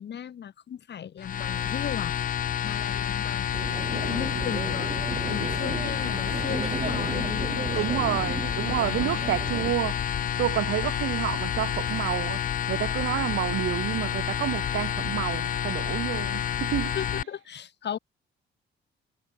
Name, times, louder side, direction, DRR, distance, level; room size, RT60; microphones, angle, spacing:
voice 1, 0.0-2.1 2.6-3.6 3.9-4.9 5.3-7.8 8.7-9.7 16.3-16.4 16.9-18.0, left 9 dB, 60° left, 5.8 m, -37 dB
sound 1, 1.2-17.2, left 9 dB, 45° left, 0.5 m, -29 dB
sound 2, 3.5-9.7, right 5 dB, 35° right, 1.6 m, -35 dB
voice 2, 7.7-10.0 10.4-12.4 12.7-16.9, right 14 dB, 80° right, 3.3 m, -29 dB
cardioid pair, 90°, 20 cm